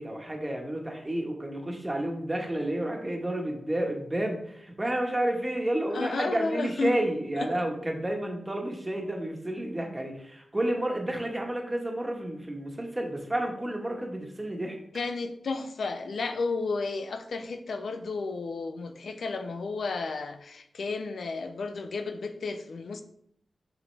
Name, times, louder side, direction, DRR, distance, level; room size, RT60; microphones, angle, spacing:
voice 1, 0.0-14.8, right 1 dB, 20° right, 1.5 m, -31 dB
voice 2, 5.9-7.0 7.3-7.5 14.9-23.0, left 4 dB, 80° left, 0.5 m, -32 dB
5.9 x 5.3 x 3.4 m
cardioid pair, 55°, 0 cm